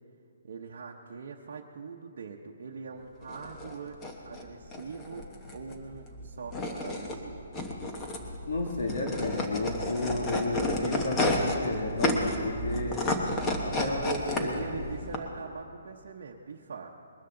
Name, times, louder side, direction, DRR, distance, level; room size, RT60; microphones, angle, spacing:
voice 1, 0.4-7.4 13.8-17.0, right 5 dB, 55° right, -2 dB, 0.9 m, -42 dB
sound 1, 3.2-15.2, left 1 dB, 15° left, 1.1 m, -32 dB
voice 2, 8.5-13.0 13.6-14.7, left 2 dB, 70° left, -1 dB, 2.4 m, -32 dB
21.5 x 13.0 x 3.9 m, 2.4 s
hypercardioid pair, 165°, 0 cm